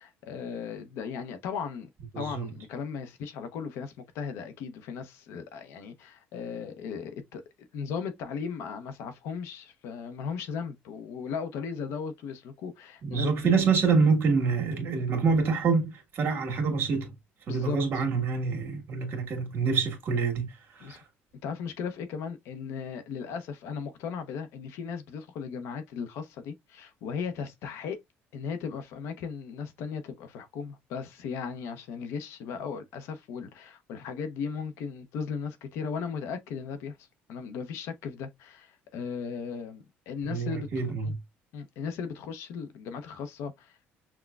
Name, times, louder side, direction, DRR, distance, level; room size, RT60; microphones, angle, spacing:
voice 1, 0.0-1.9 2.2-13.7 15.0-15.1 17.5-18.0 20.8-21.0 21.4-28.0 28.3-37.0 37.3-40.7 41.0-41.1 41.5-43.9, left 6 dB, 75° left, 0.7 m, -37 dB
voice 2, 2.1-2.5 13.0-17.1 17.5-21.0 40.2-41.2, right 5 dB, 50° right, 1.5 m, -26 dB
5.9 x 2.2 x 2.3 m
cardioid pair, 115°, 5 cm